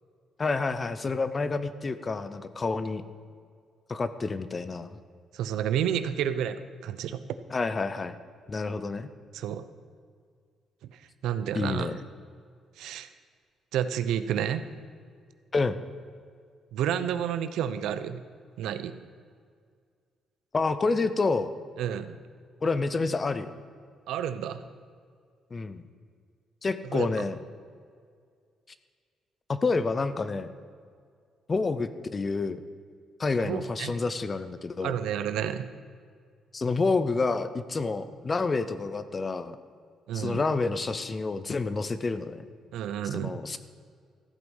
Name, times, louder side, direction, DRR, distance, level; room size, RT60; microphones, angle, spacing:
voice 1, 0.4-3.0 3.9-5.0 7.5-8.2 8.5-9.1 11.5-12.0 15.5-15.8 20.5-21.5 22.6-23.5 25.5-25.8 26.6-27.4 29.5-30.5 31.5-32.6 33.2-35.0 36.5-39.6 40.1-42.4 43.1-43.6, left 3 dB, 20° left, 12 dB, 0.5 m, -28 dB
voice 2, 5.3-7.2 9.3-9.6 11.2-11.9 12.8-13.1 13.7-14.7 16.7-18.2 18.6-19.0 21.8-22.2 24.1-24.6 26.9-27.1 33.4-34.0 34.8-35.7 40.1-40.4 42.7-43.3, right 9 dB, 80° right, 12 dB, 0.6 m, -30 dB
14.5 x 8.0 x 5.5 m, 2.1 s
cardioid pair, 170°, 0 cm